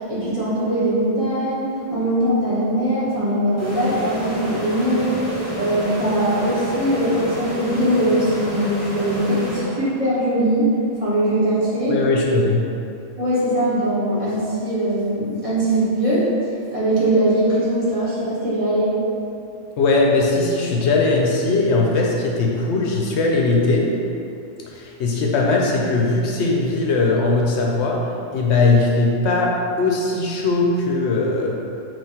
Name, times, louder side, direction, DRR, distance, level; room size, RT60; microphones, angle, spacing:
voice 1, 0.1-5.2 5.5-12.0 13.2-16.3 16.7-18.9, right 1 dB, 30° right, -11 dB, 1.1 m, -21 dB
sound 1, 3.6-10.2, equal, 15° left, 0.8 m, -29 dB
voice 2, 11.9-12.7 19.8-23.9 24.7-28.0 28.3-31.6, left 3 dB, 70° left, -1 dB, 0.8 m, -19 dB
5.5 x 2.6 x 2.8 m, 2.5 s
omnidirectional pair, 1.3 m